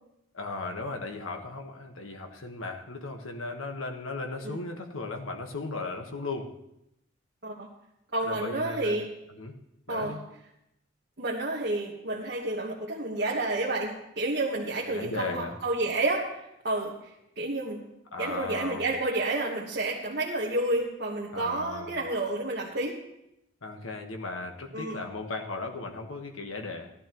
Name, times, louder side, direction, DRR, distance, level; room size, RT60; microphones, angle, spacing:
voice 1, 0.3-6.5 8.2-9.0 9.3-9.5 9.9-10.2 14.9-15.5 18.1-18.9 21.3-22.0 23.6-26.9, left 3 dB, 85° left, 3 dB, 1.4 m, -36 dB
voice 2, 8.1-9.1 9.9-10.2 11.2-17.8 18.2-23.0 24.7-25.0, right 2 dB, 55° right, -3 dB, 1.3 m, -30 dB
16.0 x 12.0 x 3.0 m, 0.83 s
head